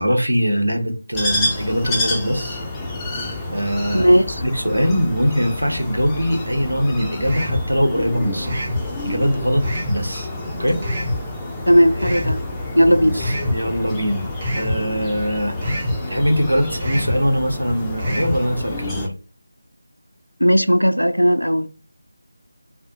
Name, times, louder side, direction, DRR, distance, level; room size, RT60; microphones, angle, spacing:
voice 1, 0.0-2.6 3.5-4.1 4.4-8.6 9.0-10.3 10.6-10.8 12.9-14.3 14.5-15.6 16.1-19.1, equal, 75° right, 0.8 m, -22 dB
sound 1, 1.1-19.1, left 2 dB, 5° left, 0.4 m, -29 dB
voice 2, 3.9-4.4 11.7-12.4 12.8-13.2 20.4-21.7, equal, 90° left, 0.3 m, -16 dB
sound 2, 7.2-7.7 8.4-8.8 9.6-10.0 10.8-11.2 12.0-12.4 13.2-13.6 14.4-14.8 15.6-16.0 16.8-17.2 18.0-18.4, left 1 dB, 25° right, 0.6 m, -24 dB
2.3 x 2.0 x 2.7 m
figure-of-eight pair, 160°, 0 cm